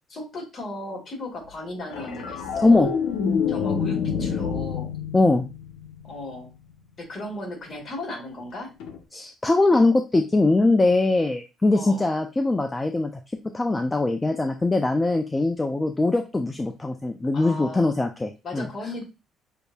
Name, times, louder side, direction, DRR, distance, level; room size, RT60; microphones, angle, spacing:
voice 1, 0.1-2.9 3.5-4.9 6.0-6.5 7.0-8.7 11.7-12.1 17.3-18.0 18.4-19.0, left 1 dB, 45° left, 0 dB, 2.1 m, -36 dB
sound 1, 1.9-6.4 8.8-9.0, left 6 dB, 85° left, 0.7 m, -28 dB
voice 2, 5.1-5.5 9.1-13.1 13.5-18.7, left 2 dB, 15° left, 5 dB, 0.4 m, -21 dB
6.5 x 2.6 x 2.2 m, 0.28 s
cardioid pair, 105°, 0 cm